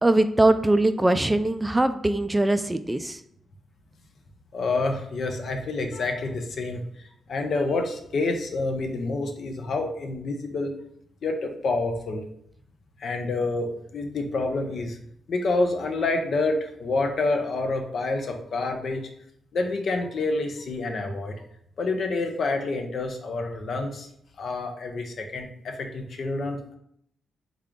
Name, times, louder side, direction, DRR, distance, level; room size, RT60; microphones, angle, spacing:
voice 1, 0.0-3.2, right 2 dB, 15° right, 10 dB, 0.3 m, -21 dB
voice 2, 4.5-6.8 7.3-10.7 11.2-12.2 13.0-15.0 15.3-19.0 19.5-21.3 21.8-24.1 24.4-26.8, left 3 dB, 65° left, 4 dB, 0.6 m, -28 dB
3.5 x 2.3 x 3.7 m, 0.69 s
supercardioid pair, 45°, 0 cm